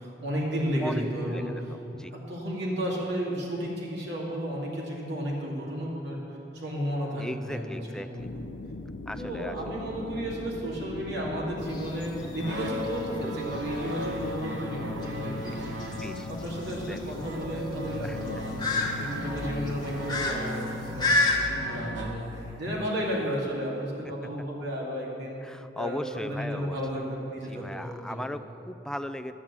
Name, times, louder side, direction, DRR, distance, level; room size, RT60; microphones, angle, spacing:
voice 1, 0.0-1.7 2.1-6.2 6.5-8.5 9.2-16.0 16.3-18.7 19.0-25.4 25.7-28.4, equal, 65° right, -4 dB, 2.5 m, -33 dB
voice 2, 0.8-1.5 1.9-2.1 7.2-8.3 9.1-9.6 15.8-16.3 16.9-17.0 18.0-18.2 18.8-19.1 25.4-26.8 27.4-29.3, equal, 5° left, 9 dB, 0.4 m, -37 dB
sound 1, 8.2-20.3, left 2 dB, 65° left, 0.5 m, -40 dB
sound 2, 11.6-21.4, left 2 dB, 25° left, 1.3 m, -32 dB
sound 3, 12.4-22.7, left 1 dB, 90° right, 1.2 m, -37 dB
12.5 x 7.6 x 7.3 m, 3.0 s
head